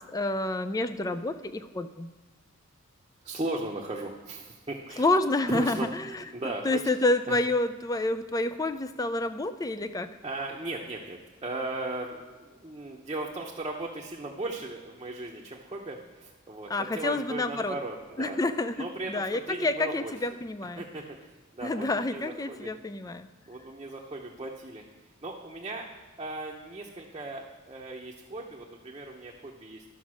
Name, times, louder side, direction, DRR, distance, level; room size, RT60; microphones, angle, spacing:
voice 1, 0.0-2.1 5.0-6.2 6.6-10.1 16.7-17.8 18.2-20.8 21.6-23.3, left 2 dB, 15° left, 11 dB, 0.4 m, -28 dB
voice 2, 3.2-5.1 5.5-5.9 6.3-6.9 7.3-7.4 10.2-20.1 20.8-22.7 23.5-25.9 26.2-29.8, right 2 dB, 25° right, -2 dB, 0.8 m, -37 dB
12.0 x 5.2 x 6.2 m, 1.4 s
head